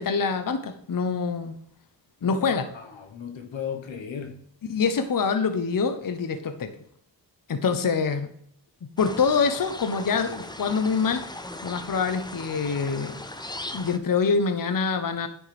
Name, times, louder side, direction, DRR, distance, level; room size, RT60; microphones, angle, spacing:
voice 1, 0.0-1.5 2.2-2.7 4.7-6.7 7.5-8.3 9.0-11.3 11.6-13.2 13.7-15.3, left 5 dB, 45° left, 9 dB, 0.8 m, -25 dB
voice 2, 2.2-4.5, left 7 dB, 85° left, 5 dB, 1.2 m, -36 dB
sound 1, 9.0-14.0, left 1 dB, 10° left, 0.6 m, -38 dB
9.6 x 6.3 x 3.4 m, 0.66 s
wide cardioid pair, 85°, 45 cm